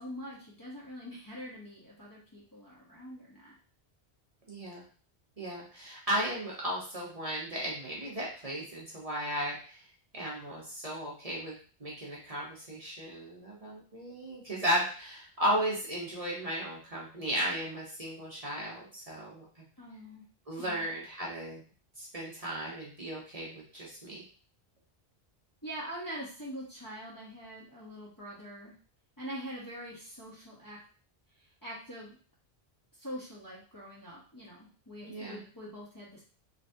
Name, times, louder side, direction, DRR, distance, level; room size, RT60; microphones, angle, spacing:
voice 1, 0.0-3.6 19.8-20.2 20.6-20.8 25.6-28.7 29.2-30.8 31.4-32.2 33.0-36.2, equal, 20° left, -7 dB, 1.1 m, -44 dB
voice 2, 4.5-4.8 5.4-9.8 10.1-19.4 20.5-21.6 22.0-24.2 35.0-35.4, equal, 35° right, -5 dB, 1.1 m, -35 dB
4.0 x 3.2 x 2.7 m, 0.40 s
omnidirectional pair, 1.1 m